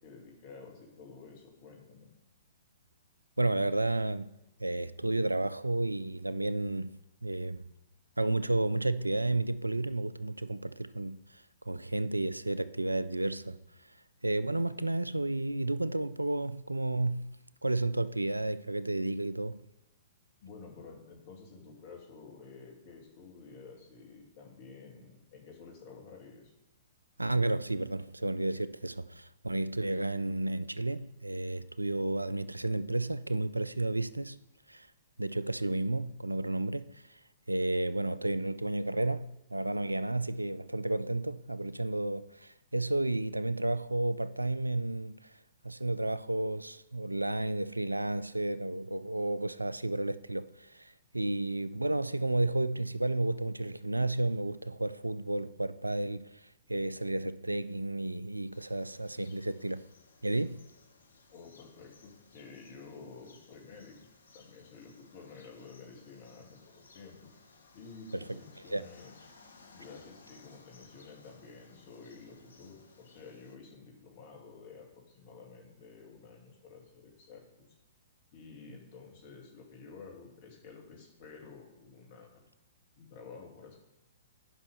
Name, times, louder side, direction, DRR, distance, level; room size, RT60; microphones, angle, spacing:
voice 1, 0.0-2.1 20.4-26.5 61.3-63.9 64.3-67.3 67.7-69.1 69.7-77.7 78.3-82.3 83.0-83.8, left 4 dB, 40° left, 2.4 m, -51 dB
voice 2, 3.4-4.3 4.6-7.7 8.2-13.9 14.2-17.4 17.6-19.6 27.2-34.4 34.7-34.9 35.2-37.2 37.5-45.4 45.6-59.9 60.2-60.6 68.7-68.8, right 2 dB, 85° right, 0.3 m, -32 dB
sound 1, 58.5-73.6, left 4 dB, 70° left, 0.9 m, -60 dB
9.9 x 5.5 x 5.5 m
figure-of-eight pair, 115°, 0 cm